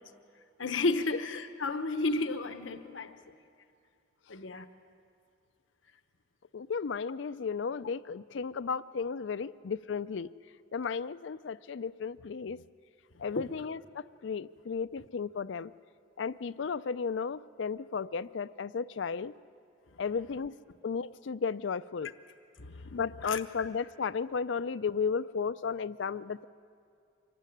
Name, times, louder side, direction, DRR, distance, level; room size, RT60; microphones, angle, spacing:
voice 1, 0.6-3.3 4.3-4.6 13.1-13.5 22.0-22.1 22.6-23.7, left 3 dB, 85° left, 1.0 m, -33 dB
voice 2, 6.5-10.3 10.7-12.6 13.2-15.7 16.2-19.3 20.0-20.5 20.8-22.1 22.9-26.5, left 5 dB, 70° left, 0.4 m, -34 dB
25.0 x 15.0 x 9.8 m
head